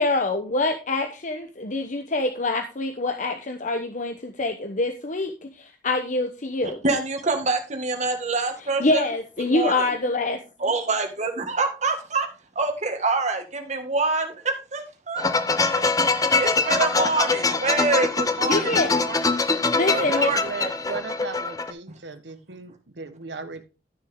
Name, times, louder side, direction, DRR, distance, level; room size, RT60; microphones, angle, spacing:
voice 1, 0.0-6.8 8.8-10.4 18.4-18.9 19.7-20.3, left 2 dB, 45° left, 5 dB, 0.9 m, -25 dB
voice 2, 6.8-9.1 9.5-9.9 10.6-12.3 12.6-14.4 14.7-15.3 15.7-19.2 19.9-20.4, right 3 dB, 40° right, 4 dB, 1.9 m, -26 dB
sound 1, 15.2-21.7, left 3 dB, 20° left, 0.7 m, -23 dB
voice 3, 20.0-23.6, right 4 dB, 85° right, 10 dB, 1.3 m, -37 dB
12.5 x 6.6 x 3.7 m, 0.32 s
head